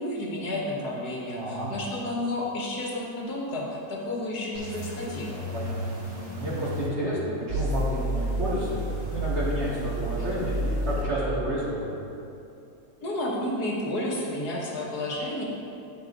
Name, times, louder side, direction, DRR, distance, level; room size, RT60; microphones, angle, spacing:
voice 1, 0.0-5.5 13.0-15.4, left 1 dB, 75° left, -3 dB, 1.7 m, -31 dB
voice 2, 1.3-1.7 5.5-11.9, right 1 dB, 40° right, -8 dB, 2.1 m, -31 dB
sound 1, 4.5-6.9 7.5-11.0, equal, 25° right, 1.4 m, -31 dB
10.5 x 6.7 x 2.5 m, 2.7 s
omnidirectional pair, 1.7 m